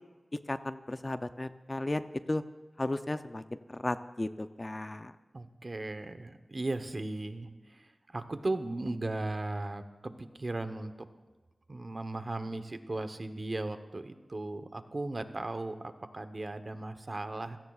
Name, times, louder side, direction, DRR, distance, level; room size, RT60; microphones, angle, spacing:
voice 1, 0.5-2.4 2.8-5.1, left 2 dB, 30° left, 10 dB, 0.5 m, -35 dB
voice 2, 5.3-11.1 11.7-17.6, right 2 dB, 40° right, 9 dB, 1.0 m, -37 dB
29.0 x 16.5 x 2.4 m, 1.2 s
wide cardioid pair, 90°, 0 cm